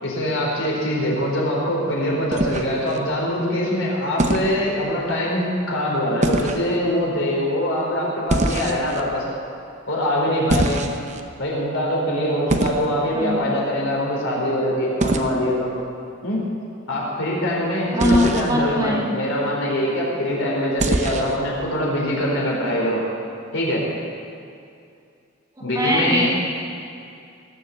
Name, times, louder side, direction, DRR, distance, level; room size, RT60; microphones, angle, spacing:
voice 1, 0.0-9.3 9.9-10.8 11.4-15.7 16.2-16.4 16.9-23.0 23.5-23.8 25.6-26.3, equal, 70° left, -3 dB, 4.2 m, -23 dB
sound 1, 2.3-3.0 4.2-4.5 6.2-6.6 8.3-9.0 10.5-11.2 12.5-12.9 15.0-15.3 18.0-18.5 20.8-21.4, right 1 dB, 35° right, 0.8 m, -23 dB
voice 2, 13.1-13.5 17.9-19.1 25.8-26.3, left 1 dB, 20° right, -3 dB, 2.2 m, -21 dB
19.0 x 7.2 x 8.0 m, 2.4 s
head